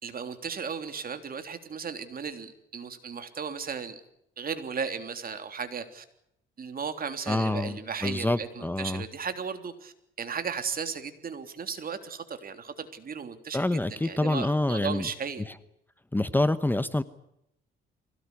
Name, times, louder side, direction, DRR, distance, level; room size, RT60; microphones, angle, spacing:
voice 1, 0.0-4.0 4.4-6.0 6.6-9.9 10.2-15.5, right 6 dB, 50° right, 8 dB, 3.4 m, -35 dB
voice 2, 7.3-9.0 13.5-15.1 16.1-17.0, left 2 dB, 10° left, 13 dB, 1.0 m, -27 dB
24.0 x 18.0 x 9.7 m, 0.79 s
cardioid pair, 90°, 20 cm